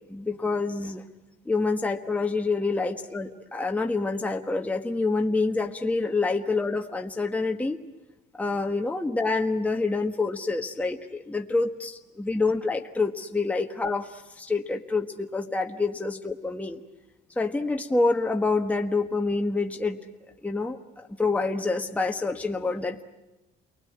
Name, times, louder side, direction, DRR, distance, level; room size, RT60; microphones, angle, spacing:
voice 1, 0.1-1.0 1.4-7.8 8.4-16.8 17.3-20.0 20.4-23.0, left 3 dB, 10° left, 3 dB, 1.3 m, -27 dB
29.0 x 20.5 x 9.7 m, 1.0 s
cardioid pair, 110°, 17 cm